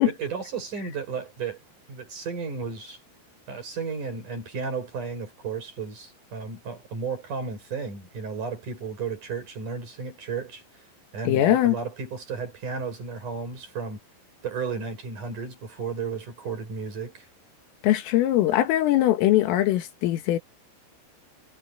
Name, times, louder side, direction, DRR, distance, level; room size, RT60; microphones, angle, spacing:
voice 1, 0.0-1.6 1.9-3.0 3.5-10.6 11.1-14.0 14.4-17.3, right 5 dB, 40° right, 6.8 m, -33 dB
voice 2, 11.3-11.8 17.8-20.4, left 14 dB, 85° left, 4.5 m, -21 dB
omnidirectional pair, 5.7 m